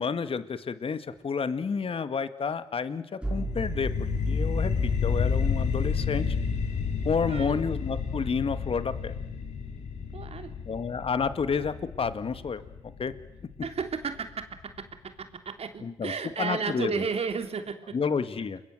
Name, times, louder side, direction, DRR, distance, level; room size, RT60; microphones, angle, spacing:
voice 1, 0.0-6.4 7.0-9.1 10.7-12.6 13.0-13.1 15.8-17.1 17.9-18.6, left 5 dB, 50° left, 12 dB, 1.9 m, -30 dB
sound 1, 3.2-7.1, right 3 dB, 10° right, 4.4 m, -38 dB
sound 2, 3.3-14.3, left 5 dB, 75° left, 3.9 m, -30 dB
voice 2, 10.1-10.5 13.6-14.9 15.2-18.0, right 5 dB, 60° right, 7 dB, 3.2 m, -33 dB
29.0 x 22.0 x 7.8 m, 0.88 s
supercardioid pair, 55°, 12 cm